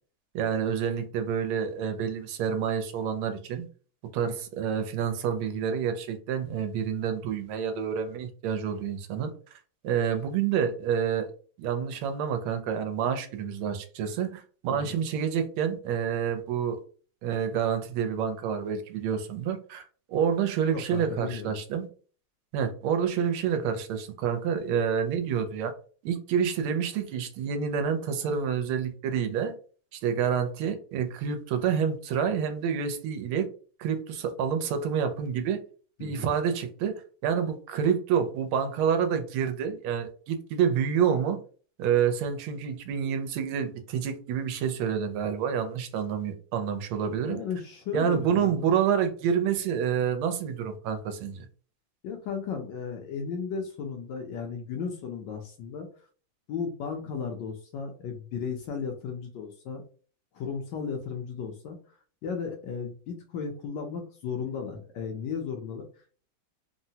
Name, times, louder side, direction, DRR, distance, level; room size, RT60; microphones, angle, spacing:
voice 1, 0.3-3.7 4.1-9.3 9.8-11.3 11.6-16.8 17.2-21.9 22.5-25.7 26.0-29.5 29.9-33.5 33.8-35.6 36.0-36.9 37.2-41.4 41.8-47.4 47.9-51.5, right 7 dB, 85° right, 8 dB, 1.5 m, -28 dB
voice 2, 20.7-21.5 36.0-36.3 47.3-48.7 52.0-55.9 56.5-59.8 60.3-61.8 62.2-65.8, left 6 dB, 70° left, 3 dB, 1.1 m, -35 dB
3.7 x 2.1 x 2.7 m, 0.40 s
omnidirectional pair, 2.3 m